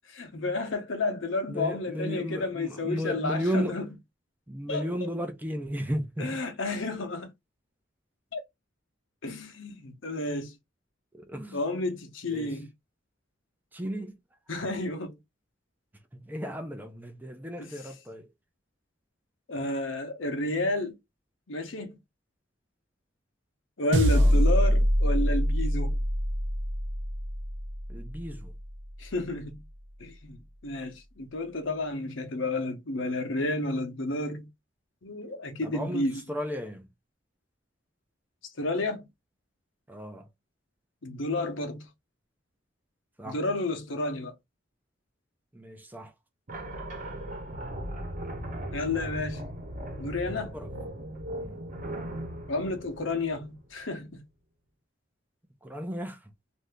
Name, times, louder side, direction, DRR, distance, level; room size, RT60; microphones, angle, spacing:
voice 1, 0.1-3.8 4.7-5.1 6.2-7.3 8.3-8.4 9.2-10.5 11.5-12.7 14.5-15.2 17.6-17.7 19.5-20.9 21.5-22.0 23.8-26.0 29.0-29.6 30.0-34.5 35.0-36.2 38.6-39.1 41.0-41.9 43.2-44.3 48.7-49.5 50.0-50.6 52.5-54.2, left 2 dB, 85° left, 0.9 m, -31 dB
voice 2, 1.5-3.8 4.5-6.3 11.1-11.6 12.3-12.6 13.7-14.2 16.2-18.3 24.1-24.4 27.9-28.5 35.6-36.9 39.9-40.3 43.2-43.4 45.5-46.1 50.3-50.7 51.3-51.6 55.6-56.3, equal, 10° right, 0.5 m, -34 dB
sound 1, 23.9-28.5, equal, 75° right, 0.8 m, -24 dB
sound 2, 46.5-53.9, right 1 dB, 45° right, 1.0 m, -38 dB
2.7 x 2.6 x 3.4 m
head